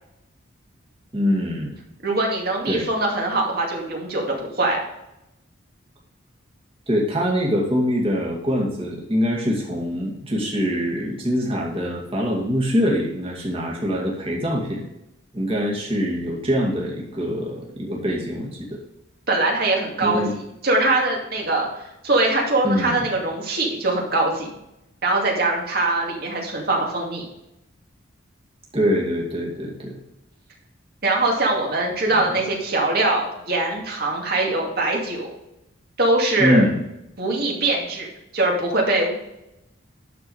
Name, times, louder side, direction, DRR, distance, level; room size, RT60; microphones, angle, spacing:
voice 1, 1.1-1.7 2.7-2.8 6.9-14.8 15.3-18.8 20.0-20.3 22.6-23.1 28.7-29.9 32.1-32.3 36.4-36.8, equal, 25° right, -2 dB, 2.3 m, -23 dB
voice 2, 2.0-4.8 19.3-21.7 22.0-24.5 25.0-27.2 31.0-35.3 36.0-36.6 37.2-38.1 38.3-39.1, right 2 dB, 50° right, -1 dB, 2.4 m, -22 dB
11.5 x 4.8 x 4.9 m, 0.87 s
head